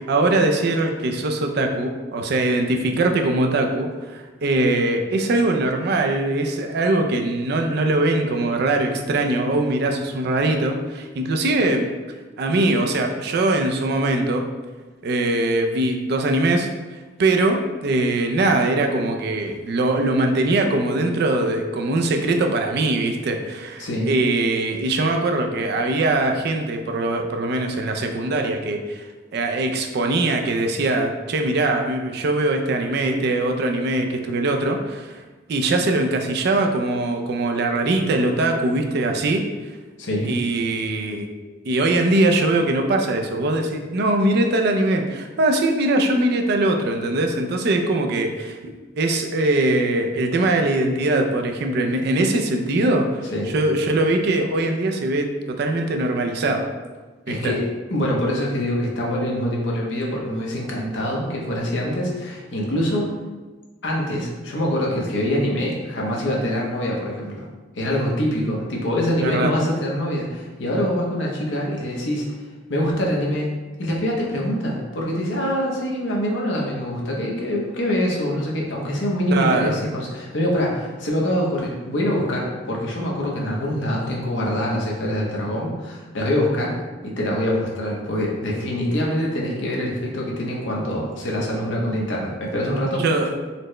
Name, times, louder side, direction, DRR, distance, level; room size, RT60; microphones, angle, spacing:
voice 1, 0.0-11.9 12.4-14.4 15.0-16.7 17.2-35.2 35.5-39.4 40.2-41.3 41.6-48.7 49.0-53.2 53.5-56.7 57.3-57.6 69.2-69.5 79.3-79.8 93.0-93.3, right 2 dB, 60° right, 4 dB, 0.4 m, -21 dB
voice 2, 40.0-40.3 53.3-53.5 57.3-57.6 57.9-63.1 63.8-67.5 67.7-72.2 72.7-73.5 73.8-86.8 87.0-93.0, equal, 90° left, -2 dB, 0.8 m, -24 dB
4.1 x 2.1 x 3.0 m, 1.3 s
head